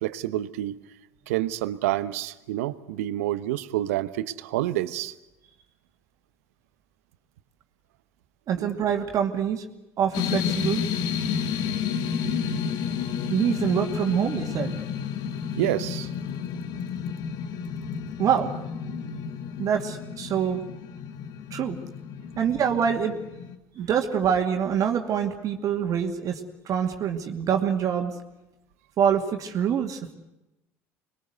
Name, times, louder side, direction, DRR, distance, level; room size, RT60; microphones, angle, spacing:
voice 1, 0.0-0.8 1.3-5.1 8.6-8.7 15.5-16.1 19.0-19.1 23.8-23.9, right 14 dB, 75° right, 15 dB, 1.0 m, -28 dB
voice 2, 8.5-9.7 10.0-10.9 13.3-14.8 18.2-18.5 19.6-20.6 21.5-21.8 22.4-23.2 23.7-28.1 29.0-30.1, right 8 dB, 50° right, 4 dB, 2.5 m, -25 dB
sound 1, 10.1-23.6, left 7 dB, 60° left, 1.6 m, -31 dB
25.5 x 21.5 x 8.1 m, 0.94 s
hypercardioid pair, 70°, 8 cm